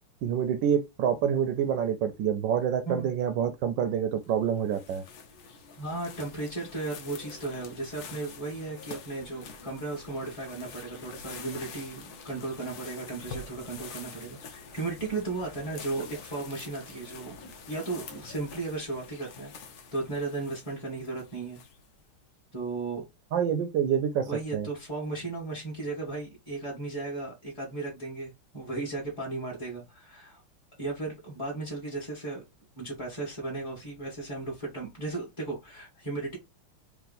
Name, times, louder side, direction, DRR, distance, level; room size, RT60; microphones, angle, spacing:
voice 1, 0.2-5.0 23.3-24.7, right 8 dB, 75° right, 1.1 m, -27 dB
voice 2, 2.8-3.3 5.8-17.3 17.7-19.5 19.9-21.6 22.5-23.0 24.2-30.4 30.8-32.4 32.8-36.4, right 3 dB, 15° left, 1.1 m, -35 dB
sound 1, 4.2-22.0, left 5 dB, 65° left, 1.0 m, -46 dB
3.5 x 2.9 x 4.0 m
omnidirectional pair, 2.4 m